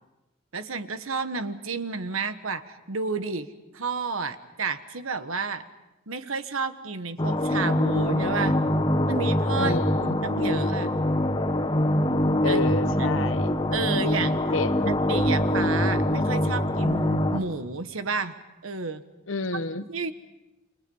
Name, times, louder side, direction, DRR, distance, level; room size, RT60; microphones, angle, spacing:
voice 1, 0.5-3.5 3.7-5.6 6.1-8.6 9.1-11.0 12.4-12.7 13.0-13.1 13.7-14.4 14.9-18.3 18.6-19.0 19.9-20.1, right 4 dB, 90° right, 10 dB, 1.4 m, -31 dB
sound 1, 7.2-17.4, left 1 dB, 20° left, 1.6 m, -24 dB
voice 2, 9.5-10.2 12.4-13.6 14.5-14.9 19.3-19.9, left 3 dB, 70° left, 11 dB, 1.1 m, -29 dB
30.0 x 25.5 x 5.6 m, 0.96 s
head